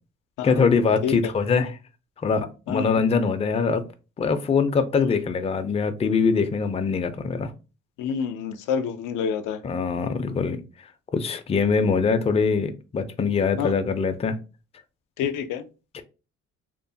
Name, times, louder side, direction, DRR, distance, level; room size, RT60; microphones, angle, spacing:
voice 1, 0.4-1.8 2.2-3.8 4.2-7.5 9.6-10.6 11.1-14.4 15.9-16.0, left 5 dB, 20° left, 0.4 m, -23 dB
voice 2, 2.7-3.0 5.0-5.1 8.0-9.6 13.6-13.7 15.2-15.6, left 7 dB, 85° left, 0.5 m, -28 dB
2.9 x 2.0 x 2.6 m
cardioid pair, 90°, 30 cm